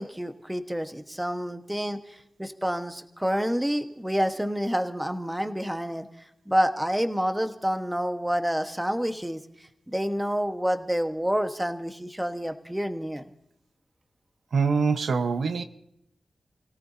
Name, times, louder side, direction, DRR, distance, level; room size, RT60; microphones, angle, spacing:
voice 1, 0.0-2.0 2.4-6.1 6.5-9.4 9.9-13.2, equal, 5° right, 1.3 m, -28 dB
voice 2, 14.5-15.6, right 5 dB, 85° right, 1.0 m, -24 dB
30.0 x 17.5 x 2.8 m
wide cardioid pair, 110°, 0 cm